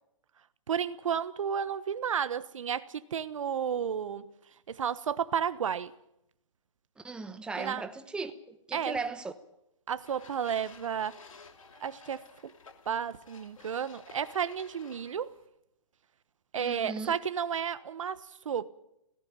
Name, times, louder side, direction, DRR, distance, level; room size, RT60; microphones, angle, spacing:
voice 1, 0.7-4.3 4.7-5.9 7.6-7.8 8.7-9.0 9.9-11.2 11.8-12.5 12.8-15.4 16.5-18.7, right 8 dB, 75° right, 1.3 m, -32 dB
voice 2, 7.0-9.3 16.5-17.2, right 4 dB, 5° right, 1.0 m, -37 dB
sound 1, 10.0-15.5, left 4 dB, 85° left, 3.1 m, -54 dB
19.0 x 17.5 x 8.9 m
hypercardioid pair, 145°, 17 cm